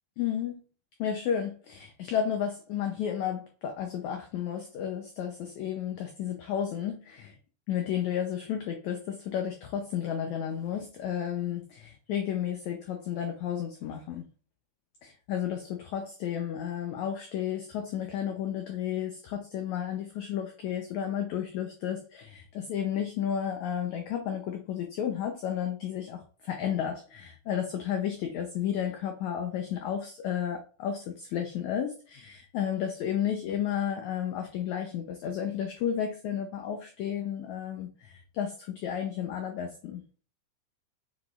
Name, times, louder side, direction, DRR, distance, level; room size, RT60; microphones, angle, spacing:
voice 1, 0.2-0.6 1.0-7.4 7.7-14.3 15.0-40.0, left 9 dB, 85° left, 4 dB, 1.6 m, -32 dB
7.5 x 6.1 x 2.4 m, 0.39 s
omnidirectional pair, 4.2 m